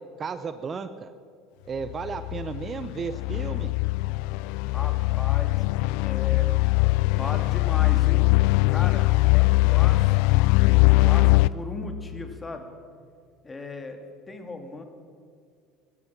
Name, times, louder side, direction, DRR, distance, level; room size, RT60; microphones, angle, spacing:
voice 1, 0.2-1.1 1.7-3.7, right 5 dB, 35° right, 11 dB, 0.8 m, -34 dB
sound 1, 1.8-11.5, left 22 dB, 65° left, 0.4 m, -21 dB
voice 2, 4.7-5.7 6.0-6.5 7.1-8.3 8.7-10.4 10.8-12.7 13.4-14.0 14.3-14.8, left 2 dB, 20° left, 5 dB, 2.4 m, -37 dB
18.5 x 12.0 x 6.1 m, 2.2 s
hypercardioid pair, 75°, 0 cm